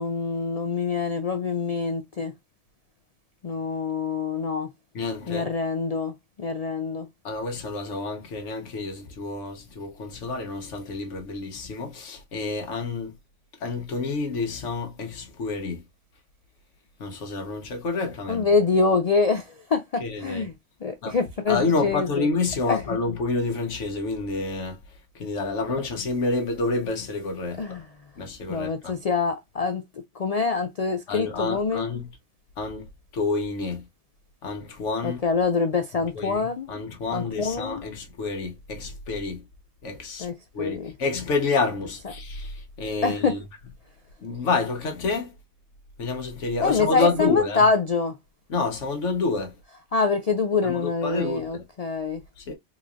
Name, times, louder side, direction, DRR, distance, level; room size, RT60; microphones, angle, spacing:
voice 1, 0.0-2.3 3.4-4.7 5.3-7.1 18.3-20.5 20.8-22.3 22.7-22.8 27.6-27.9 28.5-29.8 30.1-31.8 35.0-36.7 37.1-37.9 40.2-40.9 43.0-43.4 46.6-48.2 49.9-52.2, left 4 dB, 55° left, 0.4 m, -25 dB
voice 2, 4.9-5.5 7.2-13.1 13.6-15.8 17.0-18.5 20.0-20.5 21.0-21.2 21.5-24.8 25.1-27.8 28.2-28.9 31.1-32.1 32.6-32.9 33.1-33.8 34.4-35.2 36.1-39.4 39.8-40.3 40.5-43.4 44.2-45.3 46.0-47.6 48.5-49.5 50.6-51.6 52.4-52.5, left 3 dB, 85° left, 1.3 m, -28 dB
3.9 x 3.0 x 2.5 m
omnidirectional pair, 1.2 m